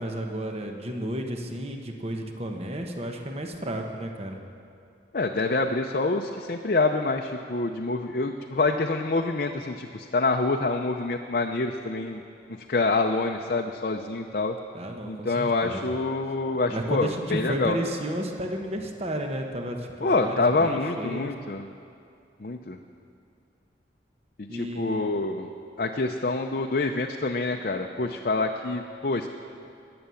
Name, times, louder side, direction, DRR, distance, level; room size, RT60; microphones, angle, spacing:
voice 1, 0.0-4.4 14.7-15.9 16.7-21.3 24.5-25.0, right 1 dB, 35° right, 3 dB, 1.1 m, -32 dB
voice 2, 5.1-12.2 12.7-14.5 15.1-17.8 20.0-21.6 22.4-22.8 24.5-25.5 25.8-29.3, left 3 dB, 50° left, 3 dB, 0.6 m, -26 dB
20.5 x 7.8 x 7.0 m, 2.5 s
head